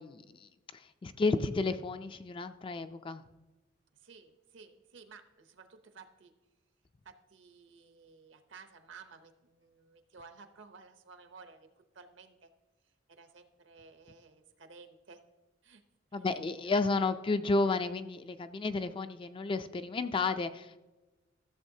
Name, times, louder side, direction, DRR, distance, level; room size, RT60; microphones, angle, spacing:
voice 1, 0.0-3.2 16.1-20.8, left 3 dB, 25° left, 10 dB, 0.3 m, -32 dB
voice 2, 3.9-6.3 7.0-12.5 12.8-15.2 15.6-15.8 16.1-16.3 16.6-16.7, right 5 dB, 65° right, 8 dB, 0.8 m, -55 dB
14.0 x 7.2 x 2.7 m, 1.1 s
head